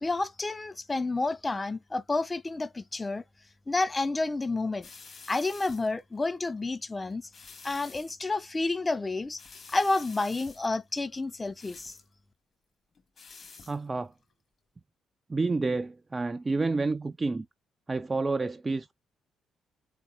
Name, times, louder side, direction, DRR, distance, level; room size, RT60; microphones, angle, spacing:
voice 1, 0.0-3.2 3.7-4.9 5.3-7.2 7.6-9.4 9.7-12.0, left 2 dB, 25° left, 0.7 m, -30 dB
sound 1, 4.8-6.6 7.1-8.1 8.4-8.8 9.2-12.1 12.9-13.8 14.1-14.3, left 4 dB, 45° left, 1.7 m, -50 dB
voice 2, 13.7-14.1 15.3-17.5 17.9-18.9, right 3 dB, 30° right, 0.4 m, -29 dB
4.1 x 3.9 x 3.0 m
hypercardioid pair, 45°, 0 cm